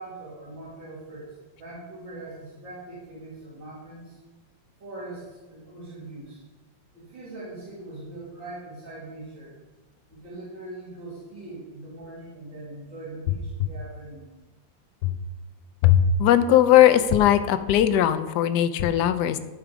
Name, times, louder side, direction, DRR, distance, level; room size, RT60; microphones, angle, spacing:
voice 1, 0.0-4.2 4.8-6.4 6.9-9.5 10.1-14.3, right 2 dB, 85° right, -11 dB, 3.6 m, -41 dB
voice 2, 15.8-19.4, left 10 dB, 70° left, 10 dB, 1.1 m, -19 dB
12.5 x 5.2 x 4.8 m, 1.2 s
omnidirectional pair, 2.0 m